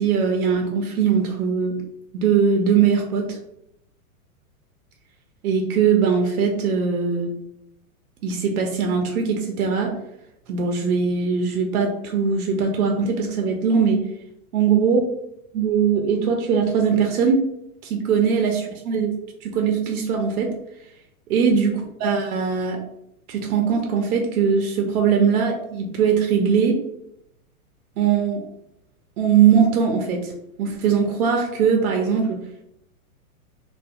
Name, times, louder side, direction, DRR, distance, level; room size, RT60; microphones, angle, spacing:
voice 1, 0.0-1.8 2.1-3.4 5.4-7.3 8.2-9.9 10.5-14.0 14.5-15.0 15.5-17.5 17.8-19.1 19.4-20.6 21.3-22.8 23.3-26.8 28.0-28.4 29.2-30.3 30.6-32.4, right 6 dB, 75° right, 3 dB, 0.6 m, -20 dB
2.6 x 2.2 x 2.3 m, 0.79 s
hypercardioid pair, 145°, 44 cm